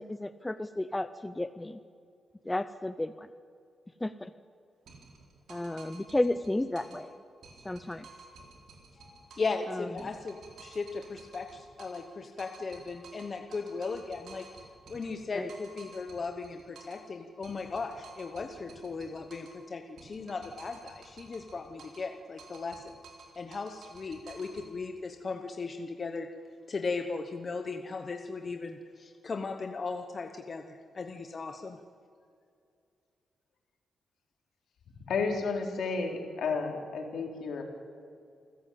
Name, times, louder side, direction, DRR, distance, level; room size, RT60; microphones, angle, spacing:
voice 1, 0.0-1.8 2.5-3.3 4.0-4.3 5.5-7.1 7.6-8.1 9.7-9.9 15.3-15.5, left 1 dB, 10° left, 11 dB, 0.5 m, -32 dB
sound 1, 4.9-7.1 7.4-9.6 10.0-12.1 12.4-17.1 17.4-19.6 20.0-22.1 22.4-24.7, right 3 dB, 65° right, 4.3 m, -53 dB
voice 2, 8.9-14.5 14.9-22.9 23.4-26.3 26.7-31.8, left 4 dB, 30° left, 5 dB, 1.0 m, -37 dB
voice 3, 35.0-37.6, left 4 dB, 65° left, 1 dB, 4.1 m, -32 dB
28.5 x 15.5 x 8.6 m, 2.4 s
wide cardioid pair, 175°, 0 cm